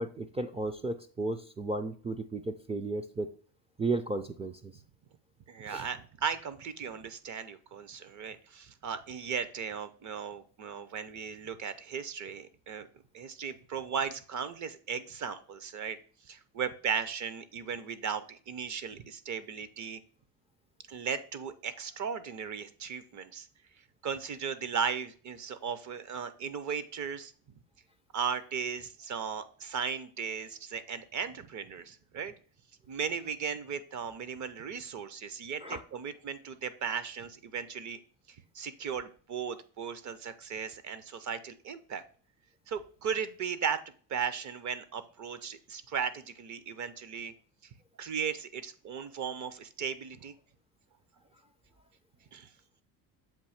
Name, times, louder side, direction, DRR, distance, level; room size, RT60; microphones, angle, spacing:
voice 1, 0.0-3.3 3.8-4.7 5.7-5.9 35.6-35.8, right 2 dB, 15° right, 4 dB, 0.4 m, -34 dB
voice 2, 5.5-12.9 13.1-16.0 16.2-20.0 20.9-23.5 24.0-27.3 28.1-32.3 32.9-38.0 38.3-42.0 42.7-43.8 44.1-47.3 48.0-50.3 52.3-52.5, right 7 dB, 40° right, 13 dB, 0.7 m, -36 dB
7.5 x 2.7 x 5.7 m, 0.42 s
cardioid pair, 110°, 44 cm